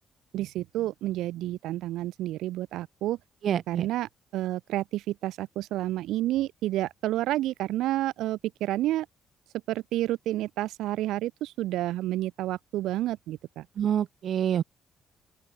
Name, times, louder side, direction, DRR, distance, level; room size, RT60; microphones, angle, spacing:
voice 1, 0.3-3.2 3.7-9.1 9.7-13.7, right 15 dB, 90° right, 3.8 m, -30 dB
voice 2, 3.4-3.9 13.8-14.6, right 9 dB, 65° right, 1.7 m, -26 dB
open air
cardioid pair, 90°, 0 cm